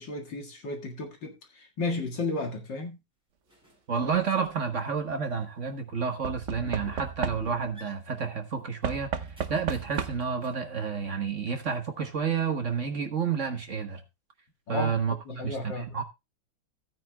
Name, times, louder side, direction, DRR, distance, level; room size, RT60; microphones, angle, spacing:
voice 1, 0.0-3.0 14.7-14.9 15.3-16.0, left 2 dB, 60° left, 2.6 m, -33 dB
sound 1, 3.4-3.9 4.4-5.4 6.0-6.1 6.7-7.2 7.5-10.7 11.0-12.0, equal, ahead, 6.6 m, -54 dB
voice 2, 3.9-9.2 9.5-14.0 14.7-16.0, right 6 dB, 40° right, 1.4 m, -30 dB
Knock / Wood, 4.0-4.5 6.2-7.8 8.8-10.4 11.5-11.6 11.8-11.9, right 7 dB, 60° right, 0.7 m, -34 dB
16.5 x 9.3 x 2.2 m
omnidirectional pair, 2.4 m